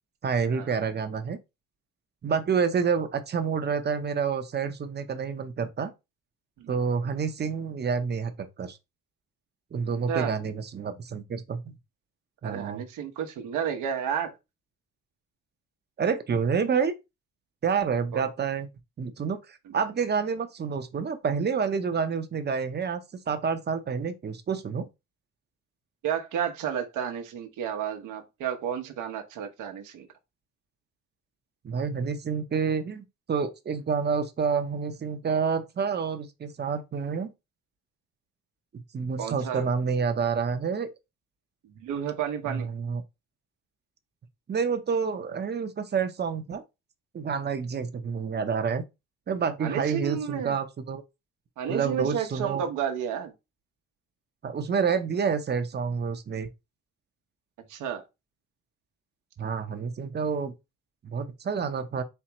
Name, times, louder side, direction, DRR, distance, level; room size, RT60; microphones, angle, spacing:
voice 1, 0.2-1.4 2.2-5.9 6.7-8.8 9.7-11.8 12.4-12.8 16.0-16.9 17.6-18.7 19.0-23.0 23.3-24.9 31.6-37.3 38.9-40.9 42.4-43.0 44.5-46.6 47.1-48.8 49.3-51.0 51.7-52.7 54.4-56.5 59.4-60.5 61.0-62.0, right 6 dB, 35° right, 0.7 m, -28 dB
voice 2, 12.4-14.3 18.1-18.2 19.7-19.8 26.0-30.1 39.2-39.6 41.8-42.7 49.6-50.6 51.6-53.3 57.7-58.0, right 8 dB, 85° right, 1.0 m, -31 dB
4.5 x 3.4 x 2.9 m
cardioid pair, 90°, 30 cm